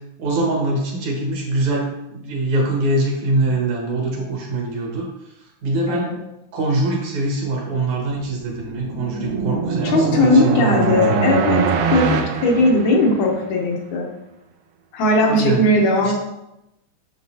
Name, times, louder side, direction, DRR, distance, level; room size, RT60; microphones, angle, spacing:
voice 1, 0.2-5.1 5.4-6.1 6.5-10.8 11.1-11.2 15.2-15.6 16.0-16.1, right 2 dB, 70° right, -1 dB, 2.8 m, -23 dB
sound 1, 8.2-13.4, right 5 dB, 85° right, 2.2 m, -22 dB
voice 2, 9.8-14.1 14.9-16.1, left 2 dB, 70° left, 0 dB, 2.3 m, -18 dB
7.6 x 6.4 x 2.8 m, 0.89 s
omnidirectional pair, 3.6 m